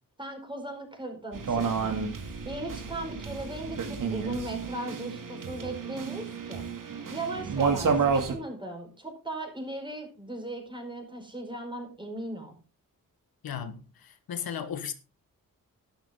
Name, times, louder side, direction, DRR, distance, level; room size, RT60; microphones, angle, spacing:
voice 1, 0.2-2.0 2.4-6.7 7.1-12.6, right 1 dB, 15° right, 4.6 m, -38 dB
sound 1, 1.3-8.3, right 5 dB, 65° right, 2.6 m, -30 dB
voice 2, 13.4-14.9, left 8 dB, 90° left, 1.5 m, -36 dB
12.5 x 11.5 x 3.8 m
wide cardioid pair, 135°, 35 cm